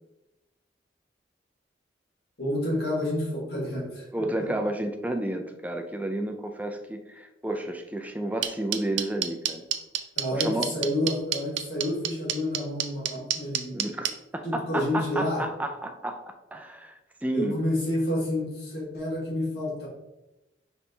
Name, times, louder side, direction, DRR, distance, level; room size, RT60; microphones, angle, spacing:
voice 1, 2.4-4.1 4.4-4.5 10.2-13.8 14.4-15.4 17.3-19.9, left 1 dB, 60° left, -3 dB, 1.4 m, -29 dB
voice 2, 4.1-9.6 10.3-10.6 13.7-16.9 17.2-17.5, right 1 dB, 10° right, 5 dB, 0.3 m, -31 dB
sound 1, 8.4-14.1, right 11 dB, 90° right, 0.4 m, -26 dB
4.3 x 3.4 x 2.7 m, 0.95 s
head